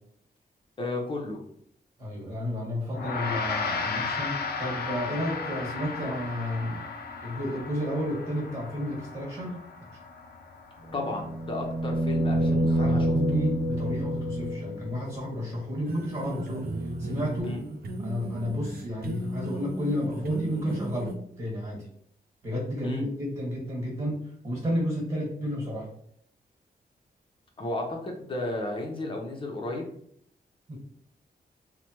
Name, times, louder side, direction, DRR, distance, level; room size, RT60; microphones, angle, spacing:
voice 1, 0.8-1.4 10.9-13.1 17.4-17.6 22.8-23.1 27.6-29.9, left 2 dB, 30° left, 0 dB, 0.7 m, -33 dB
voice 2, 2.0-6.8 7.2-10.0 12.3-17.6 18.0-21.9 22.4-25.9 30.7-30.8, equal, 25° right, -5 dB, 1.5 m, -32 dB
Gong, 2.9-12.5, left 4 dB, 75° left, 0.4 m, -35 dB
sound 1, 10.9-15.0 17.4-17.5, right 1 dB, 90° right, 0.8 m, -27 dB
sound 2, 15.9-21.2, right 1 dB, 70° right, 0.4 m, -35 dB
3.2 x 2.1 x 2.9 m, 0.67 s
wide cardioid pair, 115°, 16 cm